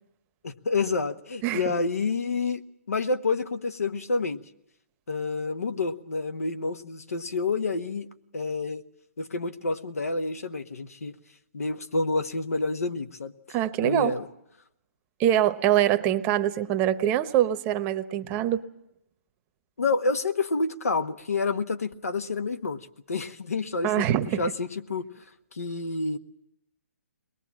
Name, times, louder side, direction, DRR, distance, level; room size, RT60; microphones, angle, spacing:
voice 1, 0.4-2.6 2.9-4.4 5.1-8.1 8.3-8.8 9.2-11.1 11.5-13.3 13.8-14.3 19.8-24.0 24.4-25.1 25.5-26.2, left 3 dB, 80° left, 9 dB, 1.4 m, -28 dB
voice 2, 13.5-14.1 15.2-18.6 23.8-24.4, right 12 dB, 25° right, 10 dB, 0.9 m, -24 dB
22.5 x 20.5 x 7.4 m, 0.81 s
hypercardioid pair, 145°, 8 cm